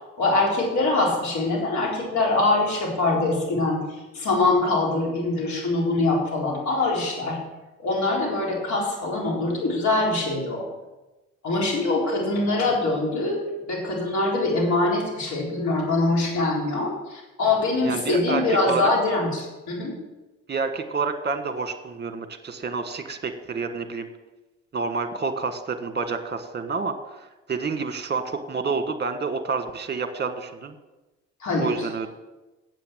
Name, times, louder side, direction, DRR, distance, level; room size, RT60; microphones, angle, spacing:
voice 1, 0.2-3.8 4.1-7.4 7.8-10.6 11.4-19.9 31.4-31.7, left 2 dB, 65° left, -2 dB, 3.9 m, -23 dB
voice 2, 17.8-18.9 20.5-24.1 24.7-30.7 31.6-32.1, right 4 dB, 35° right, 9 dB, 1.5 m, -29 dB
8.5 x 7.8 x 7.5 m, 1.1 s
supercardioid pair, 55°, 31 cm